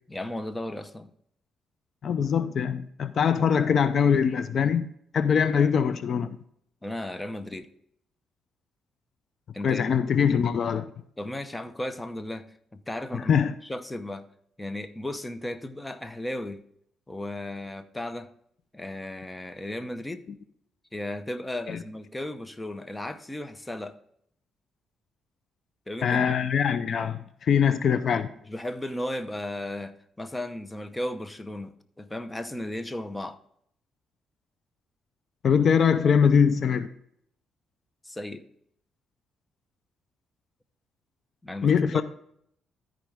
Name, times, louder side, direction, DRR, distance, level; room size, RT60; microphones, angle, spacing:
voice 1, 0.1-1.1 6.8-7.7 9.5-9.8 11.2-14.3 14.6-16.6 17.1-18.3 18.7-20.2 20.9-24.0 25.9-26.3 28.5-33.4 38.0-38.4 41.4-42.0, left 1 dB, 10° left, 0.8 m, -35 dB
voice 2, 2.0-4.9 5.1-6.4 9.6-10.9 13.1-13.5 21.7-21.8 26.0-28.3 35.4-36.9 41.6-42.0, left 7 dB, 55° left, 0.6 m, -23 dB
13.5 x 5.2 x 3.5 m
cardioid pair, 90°, 0 cm